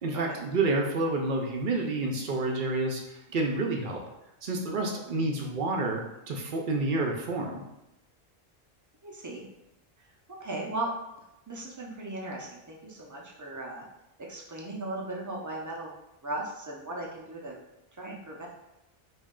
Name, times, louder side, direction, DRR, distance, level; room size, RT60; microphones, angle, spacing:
voice 1, 0.0-4.0 4.4-7.6, right 2 dB, 60° right, 1 dB, 0.7 m, -29 dB
voice 2, 9.0-9.4 10.3-10.9 11.5-13.8 14.2-15.9 16.2-17.5 17.9-18.5, right 2 dB, 25° right, -3 dB, 0.5 m, -37 dB
3.1 x 2.7 x 3.6 m, 0.91 s
omnidirectional pair, 1.0 m